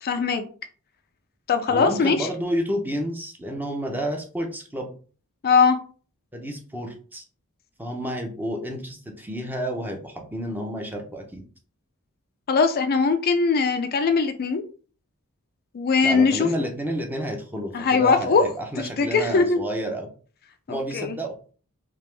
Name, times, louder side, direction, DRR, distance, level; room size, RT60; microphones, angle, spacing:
voice 1, 0.0-0.4 1.5-2.3 5.4-5.8 12.5-14.6 15.7-16.5 17.7-18.4 19.0-19.6 20.7-21.2, left 5 dB, 45° left, 0.4 m, -20 dB
voice 2, 1.7-4.9 6.3-7.2 7.8-11.4 16.0-20.1 20.7-21.3, equal, 10° right, 0.7 m, -30 dB
3.4 x 2.9 x 3.3 m
head